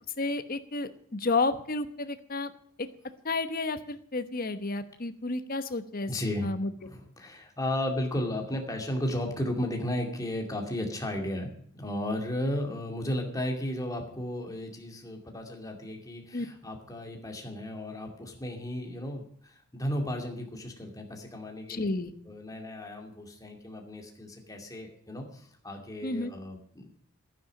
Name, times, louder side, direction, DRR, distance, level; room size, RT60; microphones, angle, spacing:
voice 1, 0.2-2.5 3.2-6.1 6.4-6.7 16.3-16.5 21.7-22.1 26.0-26.3, left 3 dB, 40° left, 10 dB, 1.1 m, -31 dB
voice 2, 6.1-6.5 6.8-11.5 11.8-21.9 22.3-27.0, left 1 dB, 15° left, 2 dB, 2.4 m, -34 dB
12.0 x 9.9 x 6.4 m, 0.64 s
head